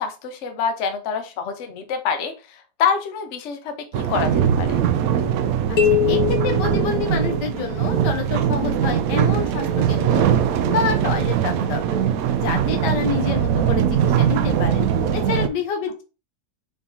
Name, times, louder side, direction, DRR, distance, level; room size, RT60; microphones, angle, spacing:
voice 1, 0.0-4.8, left 6 dB, 55° left, 6 dB, 1.0 m, -26 dB
sound 1, 3.9-15.5, right 9 dB, 70° right, 0.9 m, -21 dB
sound 2, 5.8-7.7, left 10 dB, 70° left, 1.3 m, -23 dB
voice 2, 6.1-10.3 10.7-12.0 12.4-16.0, left 6 dB, 90° left, 4 dB, 1.5 m, -27 dB
5.0 x 2.9 x 3.7 m, 0.31 s
omnidirectional pair, 1.8 m